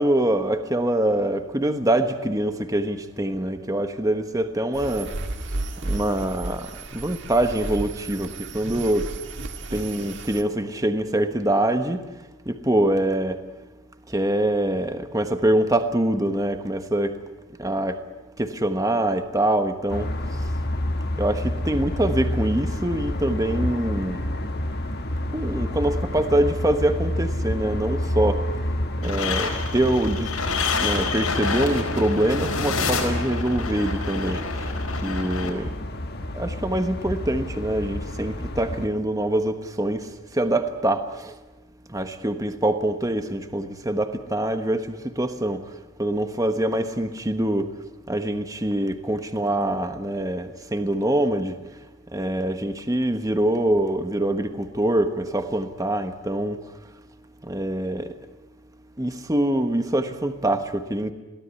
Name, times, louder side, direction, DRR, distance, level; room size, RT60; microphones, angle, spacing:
voice 1, 0.0-5.1 5.8-9.1 9.7-12.0 12.5-13.4 14.1-17.1 17.6-18.0 18.4-20.1 21.2-24.2 25.3-28.4 29.0-30.3 30.8-34.4 35.0-35.8 36.3-41.3 41.9-45.6 46.0-47.7 48.1-51.6 52.1-56.6 57.4-58.1 59.0-61.1, right 1 dB, 15° right, 8 dB, 1.2 m, -24 dB
sound 1, 4.7-10.4, right 2 dB, 55° right, 1.7 m, -33 dB
sound 2, 19.9-38.9, left 1 dB, 45° left, 1.6 m, -29 dB
sound 3, 29.0-35.5, left 4 dB, 80° left, 4.7 m, -28 dB
23.0 x 17.5 x 9.6 m, 1.1 s
head